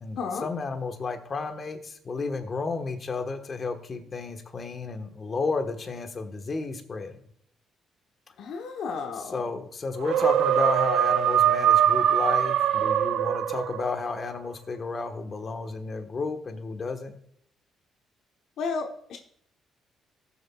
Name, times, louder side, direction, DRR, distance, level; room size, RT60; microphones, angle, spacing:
voice 1, 0.0-7.2 9.3-17.1, left 4 dB, 40° left, 6 dB, 1.2 m, -32 dB
voice 2, 8.4-9.3 18.6-19.2, left 5 dB, 75° left, 3 dB, 1.0 m, -32 dB
sound 1, 10.0-14.1, right 10 dB, 85° right, 0.5 m, -22 dB
sound 2, 10.4-13.5 14.7-14.8, right 5 dB, 70° right, 1.6 m, -46 dB
18.5 x 7.1 x 2.3 m, 0.68 s
cardioid pair, 90°, 0 cm